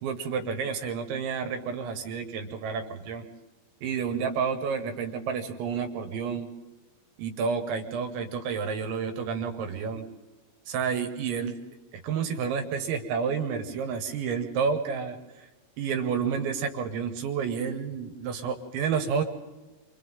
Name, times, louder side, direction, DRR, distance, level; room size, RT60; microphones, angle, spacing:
voice 1, 0.0-3.2 3.8-6.5 7.2-10.0 10.7-11.5 11.9-15.1 15.8-19.2, right 6 dB, 85° right, 6 dB, 3.9 m, -30 dB
30.0 x 25.5 x 3.7 m, 1.2 s
omnidirectional pair, 5.2 m